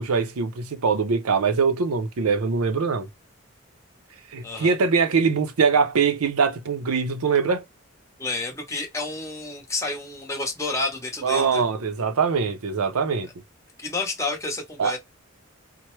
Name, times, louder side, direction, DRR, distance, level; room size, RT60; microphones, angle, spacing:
voice 1, 0.0-3.1 4.3-7.6 11.2-13.3 14.8-15.0, right 5 dB, 85° right, 0.6 m, -22 dB
voice 2, 4.4-4.7 8.2-11.6 13.8-15.0, left 3 dB, 15° left, 0.8 m, -30 dB
4.5 x 2.0 x 3.1 m
head